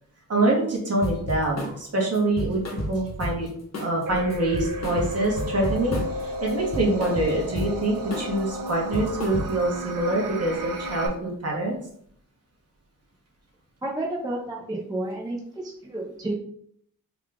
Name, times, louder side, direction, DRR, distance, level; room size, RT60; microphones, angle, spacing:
voice 1, 0.3-2.6 2.9-3.5 3.7-11.8, right 2 dB, 45° right, -2 dB, 1.2 m, -25 dB
sound 1, 1.0-1.8 2.1-3.5 3.7-4.0 4.3-6.2 6.5-7.8 8.1-8.4 8.7-9.7, equal, 50° left, 1.0 m, -31 dB
sound 2, 4.1-11.1, equal, 65° right, 0.7 m, -33 dB
voice 2, 13.8-16.3, right 1 dB, 10° right, -3 dB, 0.4 m, -31 dB
3.6 x 2.3 x 3.4 m, 0.67 s
wide cardioid pair, 130°, 35 cm